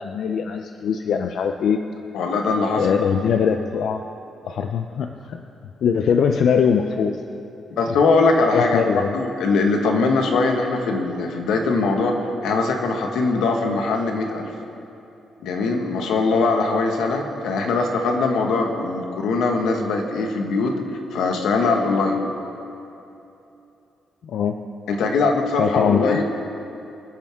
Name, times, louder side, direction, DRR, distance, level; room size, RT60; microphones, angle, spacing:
voice 1, 0.0-1.8 2.8-4.0 4.5-5.4 5.8-7.2 8.5-9.2 24.2-24.6 25.6-26.2, left 7 dB, 60° left, 5 dB, 0.5 m, -21 dB
voice 2, 2.1-2.8 7.8-8.8 9.1-12.1 12.4-14.5 15.4-20.7 21.1-22.2 24.9-26.2, left 3 dB, 85° left, 3 dB, 1.6 m, -21 dB
25.0 x 10.5 x 3.6 m, 2.8 s
cardioid pair, 175°, 0 cm